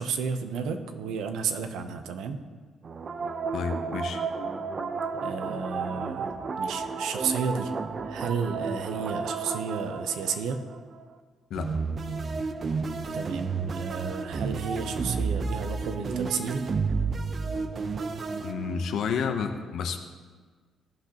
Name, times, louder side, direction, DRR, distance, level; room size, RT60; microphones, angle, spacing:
voice 1, 0.0-2.4 5.2-7.7 8.0-10.6 13.1-16.7, right 6 dB, 85° right, 8 dB, 0.7 m, -32 dB
sound 1, 2.8-11.0 11.5-19.0, right 4 dB, 45° right, 0.6 m, -32 dB
voice 2, 3.5-4.2 11.5-11.7 18.4-20.0, left 6 dB, 75° left, 5 dB, 0.8 m, -30 dB
16.0 x 6.0 x 2.9 m, 1.5 s
cardioid pair, 90°, 0 cm